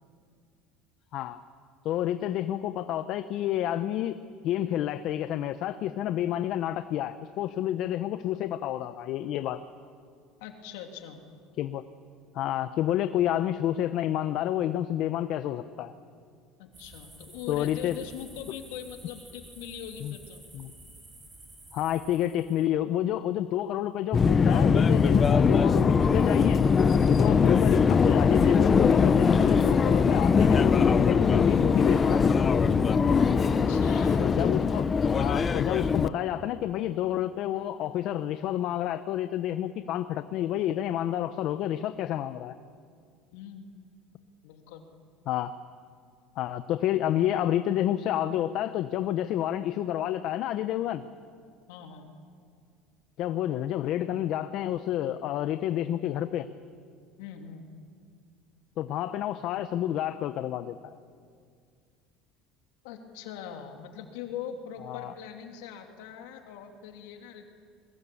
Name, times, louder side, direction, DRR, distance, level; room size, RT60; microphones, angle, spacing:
voice 1, 1.8-4.2 4.4-9.6 11.6-11.8 12.3-15.9 17.5-18.0 20.0-20.1 20.5-20.7 21.7-26.6 27.1-32.2 34.2-34.9 35.2-42.6 45.3-45.5 46.4-51.0 53.2-56.5 58.8-60.9 64.9-65.1, left 12 dB, 55° left, 11 dB, 0.8 m, -29 dB
voice 2, 10.4-11.2 16.6-20.4 27.2-27.6 33.4-34.3 43.3-43.7 44.4-44.8 51.7-52.1 57.2-57.6 62.8-67.4, left 8 dB, 85° left, 4 dB, 2.8 m, -42 dB
sound 1, 16.7-22.7, right 2 dB, 15° right, 5.8 m, -51 dB
Subway metro underground, 24.1-36.1, left 5 dB, 25° left, 0.7 m, -21 dB
22.0 x 20.5 x 8.6 m, 2.2 s
supercardioid pair, 120°, 0 cm